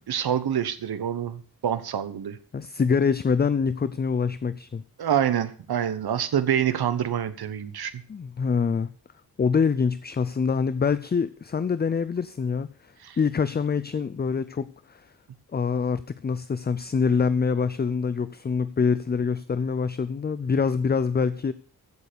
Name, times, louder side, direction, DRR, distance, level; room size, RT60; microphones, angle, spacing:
voice 1, 0.0-2.4 5.0-8.0 13.0-13.2, right 9 dB, 75° right, 11 dB, 1.1 m, -26 dB
voice 2, 2.5-4.8 8.1-8.9 9.4-15.1 15.5-21.5, left 5 dB, 25° left, 15 dB, 0.5 m, -25 dB
15.5 x 6.8 x 6.8 m, 0.43 s
wide cardioid pair, 155°, 38 cm